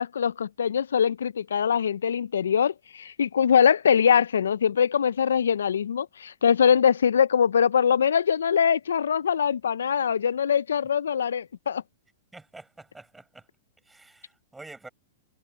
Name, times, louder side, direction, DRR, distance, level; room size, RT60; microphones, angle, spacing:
voice 1, 0.0-11.8, left 7 dB, 85° left, 0.3 m, -23 dB
voice 2, 12.3-13.5 13.8-14.9, right 2 dB, 5° right, 7.4 m, -47 dB
hypercardioid pair, 130°, 0 cm